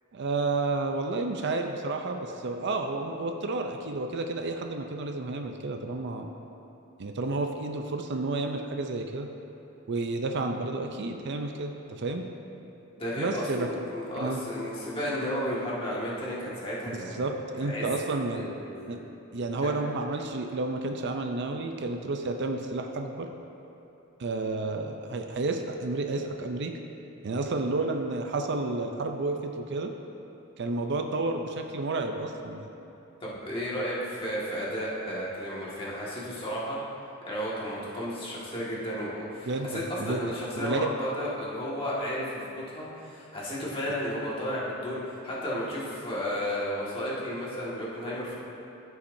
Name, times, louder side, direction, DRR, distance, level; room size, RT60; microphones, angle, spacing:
voice 1, 0.1-6.3 7.0-9.3 9.9-12.2 13.2-13.7 14.2-14.4 16.9-18.4 18.9-19.0 19.3-23.3 24.2-26.8 27.2-29.9 30.6-32.7 39.5-40.9, right 3 dB, 55° right, 4 dB, 0.5 m, -31 dB
voice 2, 13.0-17.2 17.6-17.9 18.3-19.0 19.6-19.7 27.7-27.8 33.2-36.8 37.2-48.4, equal, 25° left, -7 dB, 1.8 m, -33 dB
14.5 x 5.8 x 2.7 m, 2.9 s
head